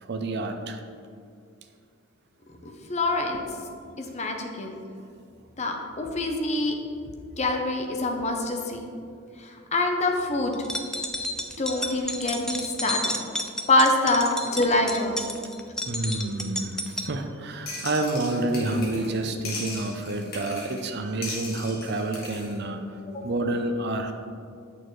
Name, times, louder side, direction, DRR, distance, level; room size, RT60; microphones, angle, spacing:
voice 1, 0.0-0.8 7.1-7.2 14.4-14.8 15.9-24.1, right 2 dB, 55° right, 6 dB, 0.6 m, -29 dB
voice 2, 2.9-3.4 4.1-4.7 5.6-6.7 7.4-8.8 9.7-10.5 11.6-13.1 13.7-15.2 23.1-23.2, left 2 dB, 35° left, 3 dB, 0.7 m, -25 dB
sound 1, 10.5-17.1, left 1 dB, 5° left, 0.4 m, -31 dB
sound 2, 17.7-19.2 19.4-20.9 21.2-22.5, left 3 dB, 50° left, 1.8 m, -38 dB
8.6 x 6.4 x 3.2 m, 2.4 s
head